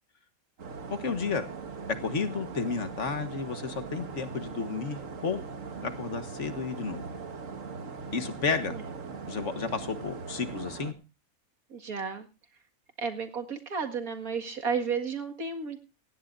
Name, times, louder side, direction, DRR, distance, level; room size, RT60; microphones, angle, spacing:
sound 1, 0.6-10.9, right 5 dB, 65° right, 1.8 m, -40 dB
voice 1, 0.9-1.5 2.0-5.4 5.8-7.0 8.1-8.8 9.3-10.9, left 5 dB, 55° left, 9 dB, 1.7 m, -32 dB
voice 2, 11.7-12.3 13.0-15.8, right 5 dB, 85° right, 7 dB, 2.4 m, -32 dB
17.0 x 17.0 x 2.6 m, 0.30 s
omnidirectional pair, 1.5 m